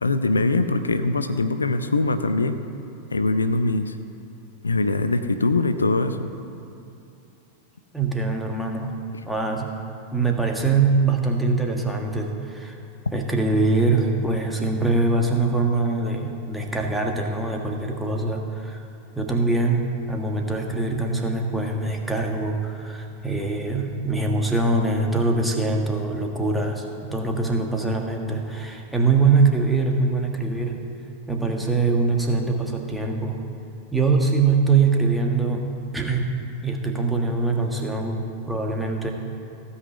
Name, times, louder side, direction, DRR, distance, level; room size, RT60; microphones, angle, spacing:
voice 1, 0.0-2.6 3.1-4.0 4.6-6.3, left 3 dB, 75° left, 10 dB, 0.6 m, -22 dB
voice 2, 7.9-9.0 9.3-9.8 10.1-12.8 13.1-18.8 19.1-30.8 31.3-33.4 33.9-35.6 35.9-36.3 36.6-39.1, right 3 dB, 5° right, 1 dB, 1.5 m, -23 dB
16.0 x 5.7 x 8.0 m, 2.8 s
figure-of-eight pair, 90°, 0 cm